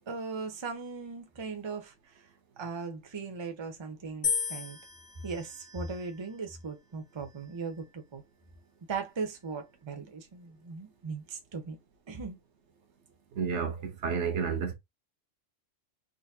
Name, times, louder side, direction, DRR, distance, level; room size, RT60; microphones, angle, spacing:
voice 1, 0.1-2.2 2.6-4.8 5.2-8.2 8.9-11.8 12.1-12.4, right 4 dB, 25° right, 0.7 m, -38 dB
sound 1, 4.2-6.4 7.2-7.8, left 5 dB, 40° left, 1.1 m, -36 dB
voice 2, 13.4-14.7, right 6 dB, 65° right, 1.1 m, -31 dB
3.9 x 2.6 x 2.7 m
omnidirectional pair, 1.3 m